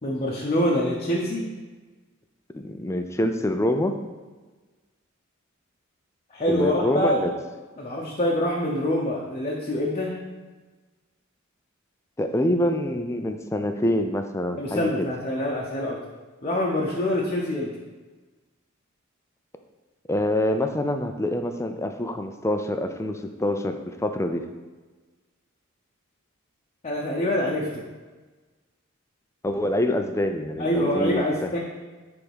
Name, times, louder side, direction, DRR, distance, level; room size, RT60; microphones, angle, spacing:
voice 1, 0.0-1.4 6.3-7.3 7.8-10.1 14.6-16.0 16.4-17.7 26.8-27.8 30.6-31.6, left 1 dB, 30° left, -3 dB, 0.9 m, -25 dB
voice 2, 2.5-4.0 6.5-7.3 12.2-15.1 20.1-24.4 29.4-31.5, left 1 dB, 15° left, 6 dB, 0.5 m, -26 dB
8.2 x 3.6 x 6.2 m, 1.3 s
head